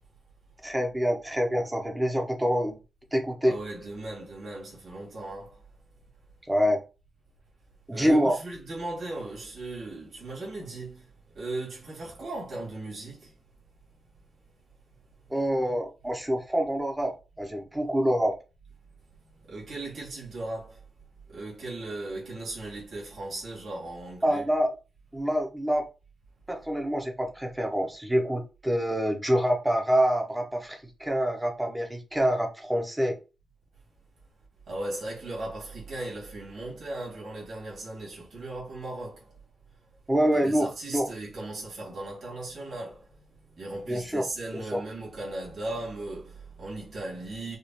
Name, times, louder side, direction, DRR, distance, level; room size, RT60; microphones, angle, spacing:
voice 1, 0.6-2.8 3.1-3.5 6.5-6.8 7.9-8.4 15.3-18.3 24.2-24.7 25.1-25.9 26.5-33.2 40.1-40.7 40.9-41.1 43.9-44.2 44.7-44.8, equal, 10° right, 0.5 m, -26 dB
voice 2, 3.4-5.7 7.9-13.4 15.2-15.4 19.1-20.9 21.3-24.5 34.7-39.4 39.8-39.9 40.3-47.6, right 2 dB, 60° right, 1.9 m, -37 dB
5.0 x 2.3 x 2.8 m
wide cardioid pair, 180°, 0 cm